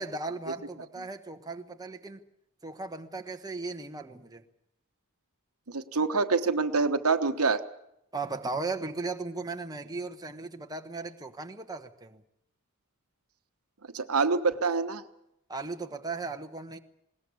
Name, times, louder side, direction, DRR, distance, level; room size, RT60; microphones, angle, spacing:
voice 1, 0.0-2.2 2.6-4.4 8.1-12.2 15.5-16.8, right 3 dB, 20° right, 1.2 m, -37 dB
voice 2, 5.7-7.6 13.9-15.0, right 4 dB, 80° right, 1.3 m, -26 dB
21.0 x 18.5 x 8.5 m
head